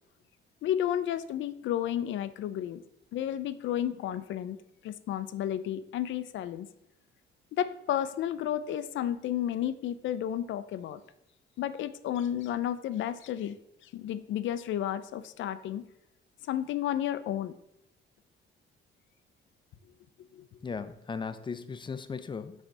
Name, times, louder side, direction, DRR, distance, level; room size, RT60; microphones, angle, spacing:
voice 1, 0.6-2.8 3.1-4.6 4.8-6.7 7.5-11.0 11.6-13.6 13.8-15.9 16.5-17.6 20.3-20.4, left 11 dB, 75° left, 13 dB, 0.5 m, -32 dB
voice 2, 20.6-22.6, left 5 dB, 25° left, 12 dB, 0.5 m, -37 dB
6.1 x 3.3 x 5.3 m, 0.81 s
cardioid pair, 90°, 20 cm